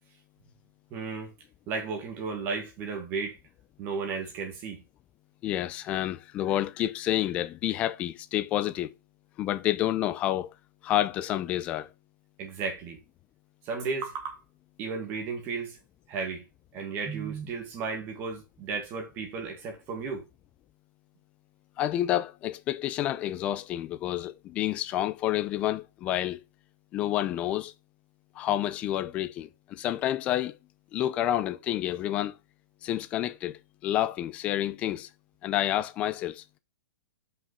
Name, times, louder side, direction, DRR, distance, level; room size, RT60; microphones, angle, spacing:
voice 1, 0.9-1.3 1.7-3.4 3.8-4.8 12.4-13.0 13.6-14.4 14.8-15.8 16.1-16.4 16.7-20.2, right 5 dB, 20° right, 1.6 m, -34 dB
voice 2, 5.4-8.9 9.4-10.5 10.8-11.9 21.8-26.4 26.9-27.7 28.4-30.6 30.9-32.4 32.8-35.1 35.4-36.4, left 13 dB, 10° left, 0.3 m, -29 dB
5.6 x 5.3 x 4.8 m
hypercardioid pair, 175°, 11 cm